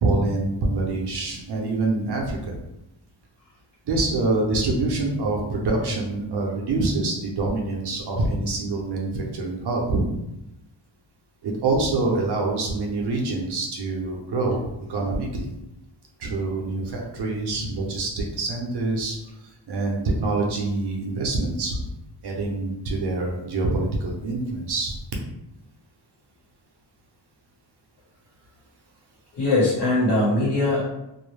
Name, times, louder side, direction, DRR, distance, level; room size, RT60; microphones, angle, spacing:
voice 1, 0.0-2.6 3.9-10.0 11.4-14.6 14.9-15.5 16.2-21.9 22.2-25.0, right 2 dB, 60° right, 0 dB, 0.6 m, -25 dB
voice 2, 29.3-30.8, left 2 dB, 60° left, -6 dB, 1.2 m, -21 dB
2.4 x 2.0 x 3.1 m, 0.89 s
wide cardioid pair, 170°, 47 cm